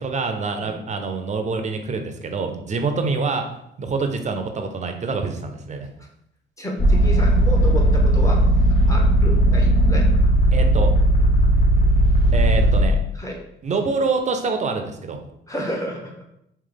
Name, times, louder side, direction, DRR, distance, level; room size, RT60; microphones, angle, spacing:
voice 1, 0.0-3.5 3.8-5.9 10.5-10.9 12.3-13.0 13.6-15.2, right 4 dB, 35° right, 5 dB, 0.6 m, -26 dB
voice 2, 6.6-8.4 8.9-10.0 13.2-13.4 15.5-16.2, equal, 15° left, -1 dB, 1.1 m, -31 dB
sound 1, 6.8-12.8, right 1 dB, 35° left, 1.2 m, -16 dB
3.4 x 2.9 x 3.9 m, 0.76 s
cardioid pair, 90°, 20 cm